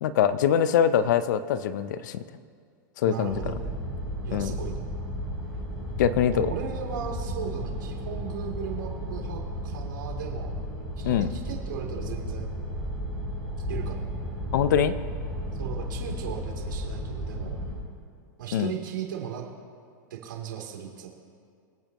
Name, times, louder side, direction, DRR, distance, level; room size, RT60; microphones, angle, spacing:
voice 1, 0.0-2.2 3.0-3.4 4.3-4.5 6.0-6.5 11.0-11.3 14.5-14.9 18.5-18.7, left 9 dB, 65° left, 13 dB, 0.7 m, -23 dB
voice 2, 3.0-3.7 4.2-4.9 6.3-10.5 11.0-12.5 13.7-14.0 15.6-17.6 18.4-19.4 20.1-21.1, right 8 dB, 80° right, -1 dB, 3.2 m, -37 dB
sound 1, 3.3-17.8, equal, 10° left, 3.3 m, -34 dB
24.5 x 9.0 x 3.1 m, 2.1 s
supercardioid pair, 145°, 11 cm